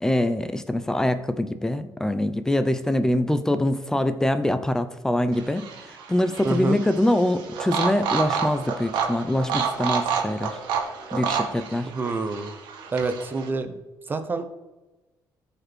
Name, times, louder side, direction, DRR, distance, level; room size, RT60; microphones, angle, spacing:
voice 1, 0.0-10.6 11.1-11.9, left 1 dB, 5° left, 11 dB, 0.6 m, -24 dB
sound 1, 5.3-13.5, right 6 dB, 80° right, 1.9 m, -29 dB
voice 2, 6.4-6.8 11.8-12.6 12.9-13.8 14.1-14.4, right 3 dB, 25° right, 9 dB, 1.0 m, -27 dB
14.0 x 5.4 x 4.5 m, 1.1 s
cardioid pair, 130°, 8 cm